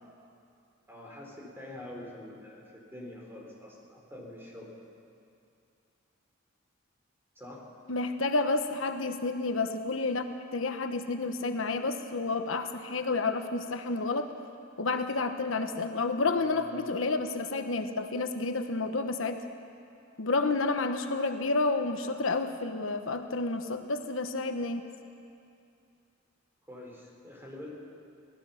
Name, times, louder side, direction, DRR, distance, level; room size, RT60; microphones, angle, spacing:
voice 1, 0.9-4.7 7.4-7.6 16.5-16.7 26.7-27.7, left 1 dB, 10° right, -2 dB, 4.3 m, -45 dB
voice 2, 7.9-10.3 10.5-14.3 14.8-19.4 20.2-24.8, left 3 dB, 80° left, 7 dB, 1.1 m, -30 dB
24.5 x 18.5 x 5.8 m, 2.5 s
head